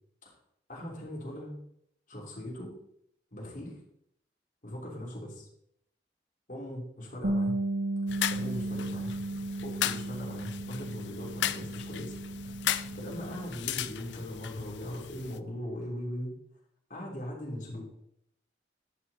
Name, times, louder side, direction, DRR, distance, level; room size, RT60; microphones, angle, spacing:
voice 1, 0.7-1.6 2.1-2.7 3.3-3.8 4.6-5.5 6.5-7.6 8.3-9.2 9.6-12.1 12.9-16.4 16.9-17.9, equal, 50° left, -4 dB, 3.1 m, -39 dB
Bass guitar, 7.2-13.5, right 2 dB, 80° right, 1.2 m, -35 dB
sound 1, 8.1-15.4, left 11 dB, 85° left, 0.4 m, -36 dB
11.0 x 6.2 x 4.1 m, 0.73 s
head